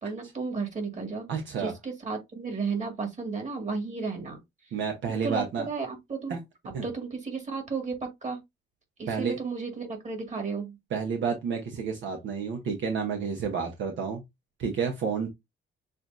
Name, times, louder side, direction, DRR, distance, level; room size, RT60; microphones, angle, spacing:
voice 1, 0.0-1.2 1.6-4.4 5.1-6.4 6.8-8.4 9.0-10.8, right 4 dB, 35° right, 2.1 m, -33 dB
voice 2, 1.3-1.7 4.7-5.7 6.3-6.4 6.7-6.9 9.1-9.4 10.9-14.2 14.6-15.3, right 6 dB, 75° right, 1.1 m, -30 dB
6.8 x 2.6 x 2.7 m
cardioid pair, 90°, 20 cm